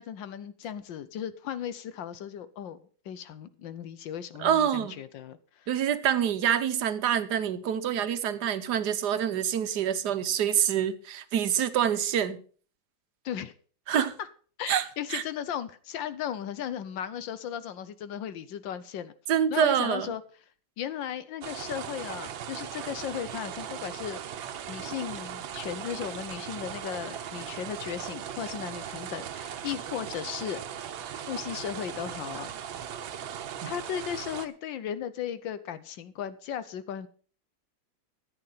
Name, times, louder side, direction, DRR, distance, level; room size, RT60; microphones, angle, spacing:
voice 1, 0.0-2.8 3.0-5.7 13.2-13.5 14.0-14.1 14.6-19.1 19.5-20.2 20.8-24.2 24.7-30.6 31.3-32.8 33.6-37.1, left 9 dB, 75° left, 1.5 m, -36 dB
voice 2, 4.4-5.0 5.7-12.4 13.9-14.1 14.7-14.8 15.1-15.2 19.3-20.1 33.6-33.7, right 9 dB, 65° right, 1.4 m, -26 dB
sound 1, 21.4-34.5, right 9 dB, 85° right, 1.7 m, -38 dB
13.5 x 8.6 x 5.6 m
omnidirectional pair, 2.1 m